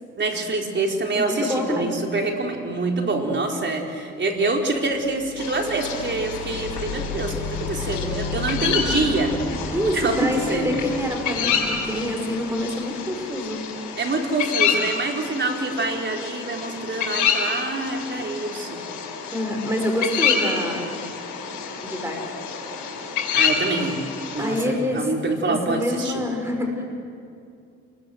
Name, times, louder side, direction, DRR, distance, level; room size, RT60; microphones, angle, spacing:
voice 1, 0.2-9.4 9.9-10.7 14.0-18.8 23.3-24.0 24.3-26.2, right 2 dB, 35° right, 2 dB, 4.1 m, -26 dB
voice 2, 1.1-1.9 9.7-13.6 19.3-20.9 21.8-22.3 24.4-25.1 25.7-26.8, left 1 dB, 10° right, 2 dB, 5.9 m, -26 dB
sound 1, 4.7-13.5, left 3 dB, 15° left, 3.5 m, -33 dB
sound 2, 5.4-24.6, left 6 dB, 85° left, 6.4 m, -28 dB
27.0 x 22.0 x 7.8 m, 2.4 s
cardioid pair, 90°, 30 cm